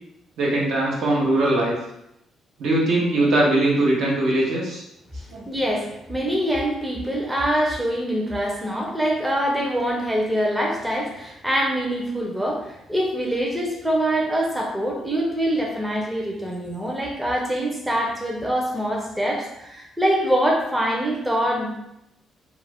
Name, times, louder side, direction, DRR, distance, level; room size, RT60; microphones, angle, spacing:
voice 1, 0.4-1.7 2.6-4.8 5.3-5.4, right 1 dB, 75° right, -4 dB, 0.8 m, -20 dB
voice 2, 5.5-21.7, equal, 10° right, -2 dB, 0.5 m, -24 dB
2.4 x 2.0 x 3.4 m, 0.83 s
cardioid pair, 90°, 0 cm